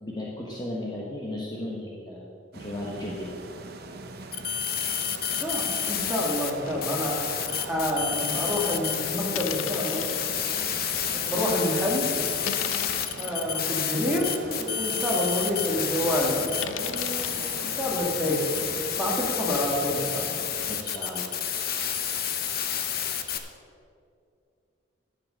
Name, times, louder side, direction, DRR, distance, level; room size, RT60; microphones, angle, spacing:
voice 1, 0.0-2.2 2.5-3.3 20.7-21.3, left 1 dB, 20° left, -3 dB, 1.2 m, -35 dB
sound 1, 2.5-20.8, right 2 dB, 50° right, 0.8 m, -42 dB
sound 2, 4.3-6.5 6.8-23.4, left 8 dB, 45° left, 0.8 m, -30 dB
voice 2, 5.4-10.0 11.1-12.1 13.2-14.3 14.6-16.5 16.8-17.4 17.8-18.5 19.0-20.4, left 1 dB, 5° right, -3 dB, 2.1 m, -28 dB
sound 3, 6.6-6.9 7.4-7.5 8.5-8.7 9.3-10.2 10.9-11.0 11.5-11.7 12.4-13.4 14.0-14.1 14.6-14.7 14.9-15.0 16.6-17.3, left 10 dB, 75° left, 0.4 m, -36 dB
11.5 x 7.7 x 6.3 m, 2.5 s
head